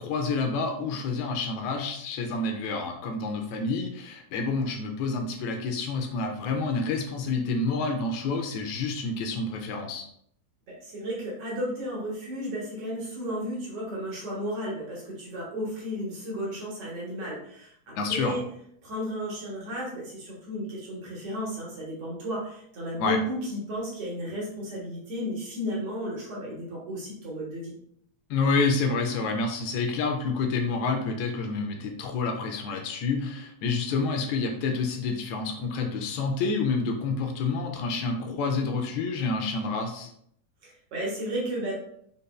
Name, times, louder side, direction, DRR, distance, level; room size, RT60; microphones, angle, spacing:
voice 1, 0.0-10.1 18.0-18.4 23.0-23.2 28.3-40.1, left 4 dB, 80° left, 4 dB, 1.8 m, -28 dB
voice 2, 10.7-18.4 18.8-27.7 40.6-41.8, equal, 60° right, -5 dB, 2.1 m, -33 dB
5.2 x 4.0 x 2.2 m, 0.69 s
omnidirectional pair, 3.3 m